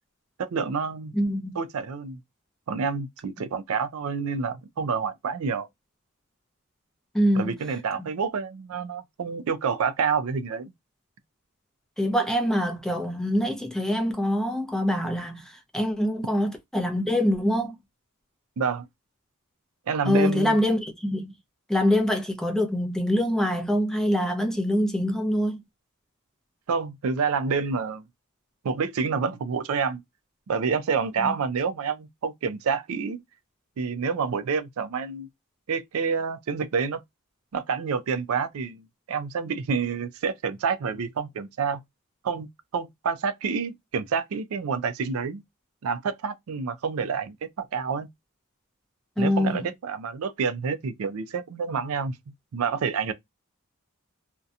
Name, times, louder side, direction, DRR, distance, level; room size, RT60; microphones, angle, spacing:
voice 1, 0.4-1.1 1.6-2.2 2.7-5.7 7.3-10.7 18.6-18.9 19.9-20.6 26.7-28.0 28.6-30.0 30.5-33.2 33.8-35.3 35.7-37.0 37.5-41.8 42.2-42.5 42.7-45.4 45.8-48.1 49.2-52.2 52.5-53.1, right 5 dB, 70° right, 0.4 m, -28 dB
voice 2, 1.1-1.6 7.1-7.5 12.0-15.5 15.7-17.7 20.1-21.3 21.7-25.6 31.2-31.3 49.2-49.6, equal, ahead, 0.5 m, -24 dB
2.7 x 2.1 x 2.4 m
head